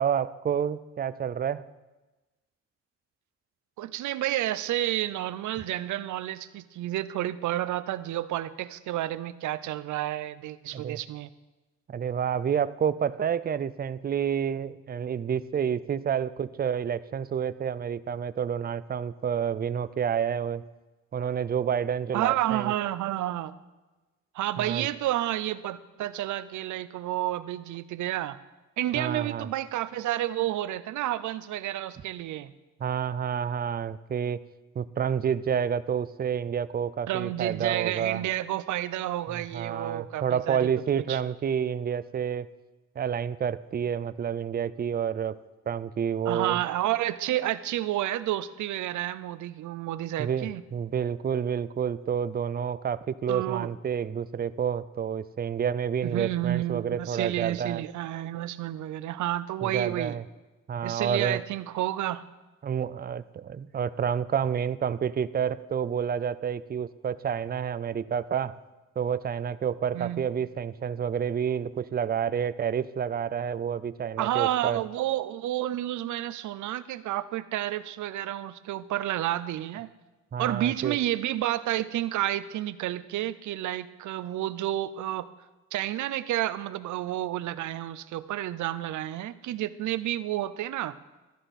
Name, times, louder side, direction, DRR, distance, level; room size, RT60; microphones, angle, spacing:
voice 1, 0.0-1.6 10.7-11.0 11.9-20.6 21.1-22.7 24.6-24.9 28.9-29.5 32.8-34.4 34.8-38.2 39.3-42.5 43.0-45.4 45.7-46.6 50.2-57.8 59.6-60.2 60.7-61.4 62.6-68.6 69.0-74.8 80.3-81.0, right 8 dB, 30° right, 15 dB, 0.5 m, -29 dB
voice 2, 3.8-11.3 22.1-23.5 24.3-28.4 28.8-32.5 37.1-40.7 41.1-41.2 46.3-50.6 53.3-53.7 56.0-60.2 60.8-62.2 69.9-70.3 74.2-79.9 80.4-85.3 85.7-91.0, right 13 dB, 75° right, 15 dB, 0.7 m, -30 dB
14.0 x 11.0 x 4.2 m, 1.1 s
cardioid pair, 90°, 30 cm